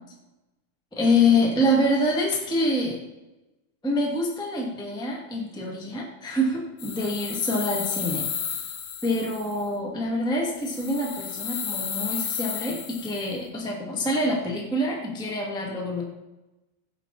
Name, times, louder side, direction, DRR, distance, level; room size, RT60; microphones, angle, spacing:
voice 1, 0.9-3.0 3.8-8.2 9.0-16.0, left 1 dB, ahead, -1 dB, 1.5 m, -26 dB
sound 1, 6.8-9.6 10.6-13.3, left 8 dB, 65° left, 2.4 m, -33 dB
15.5 x 8.4 x 4.3 m, 1.0 s
omnidirectional pair, 4.5 m